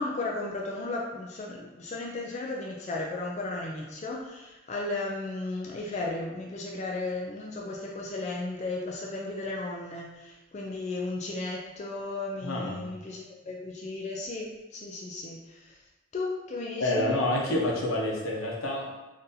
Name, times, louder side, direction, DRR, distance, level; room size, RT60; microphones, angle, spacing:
voice 1, 0.0-15.8 16.1-17.1, left 2 dB, 35° left, -2 dB, 0.3 m, -35 dB
voice 2, 12.4-12.9 16.8-19.1, left 1 dB, 85° left, -2 dB, 0.8 m, -28 dB
3.9 x 2.6 x 2.6 m, 1.0 s
head